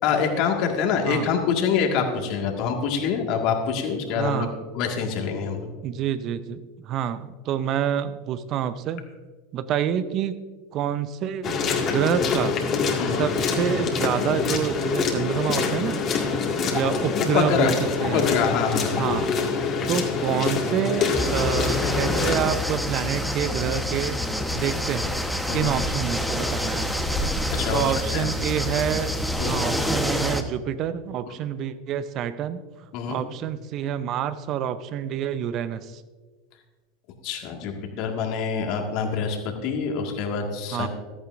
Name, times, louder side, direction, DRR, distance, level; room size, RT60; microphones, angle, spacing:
voice 1, 0.0-4.5 4.7-5.6 13.0-13.3 17.3-17.7 18.1-18.9 25.5-25.7 27.5-27.8 28.1-28.3 29.4-29.7 32.9-33.2 37.2-40.9, left 6 dB, 55° left, 3 dB, 1.8 m, -25 dB
voice 2, 4.1-4.5 5.8-9.0 9.5-10.3 10.7-12.6 13.1-16.0 16.7-17.7 18.0-18.3 18.9-19.3 19.9-24.2 24.5-25.1 25.5-27.1 27.7-32.6 33.1-36.0 40.7-40.9, right 9 dB, 45° right, 13 dB, 0.7 m, -27 dB
sound 1, 11.4-22.4, left 5 dB, 40° left, 2.0 m, -25 dB
sound 2, 21.1-30.4, left 1 dB, ahead, 1.1 m, -27 dB
14.5 x 13.5 x 2.6 m, 1.4 s
hypercardioid pair, 85°, 0 cm